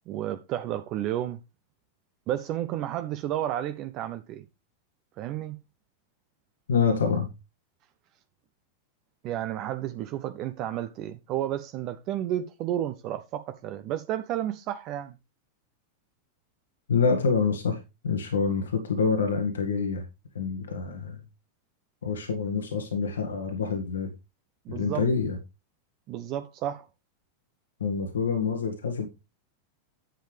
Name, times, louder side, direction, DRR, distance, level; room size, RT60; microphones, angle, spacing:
voice 1, 0.1-1.4 2.3-4.4 5.2-5.6 9.2-15.2 24.7-25.0 26.1-26.9, right 12 dB, 40° right, 0.6 m, -31 dB
voice 2, 6.7-7.3 16.9-20.0 20.3-21.2 22.0-24.1 24.7-25.4 27.8-29.1, left 5 dB, 70° left, 1.6 m, -26 dB
10.0 x 7.3 x 3.4 m
figure-of-eight pair, 90°, 0 cm